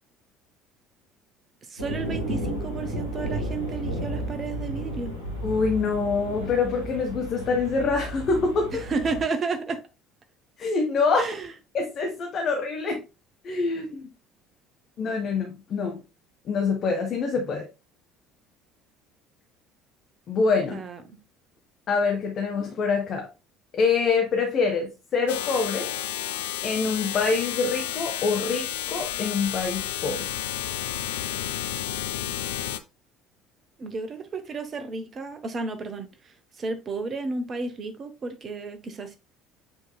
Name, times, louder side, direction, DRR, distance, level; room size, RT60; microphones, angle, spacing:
voice 1, 1.7-5.1 8.7-9.8 11.2-11.5 20.7-21.2 33.8-36.1 36.6-39.2, right 4 dB, 35° right, 0.8 m, -32 dB
sound 1, 1.8-9.3, right 1 dB, 85° right, 1.3 m, -33 dB
voice 2, 5.4-8.7 10.6-11.3 11.7-13.0 13.4-14.1 15.0-16.0 16.4-17.7 20.3-20.8 21.9-23.3 23.7-25.9 26.6-30.3, left 4 dB, 45° left, 0.8 m, -25 dB
sound 2, 25.3-32.8, left 11 dB, 70° left, 0.3 m, -31 dB
7.3 x 3.0 x 2.2 m
figure-of-eight pair, 60°, 0 cm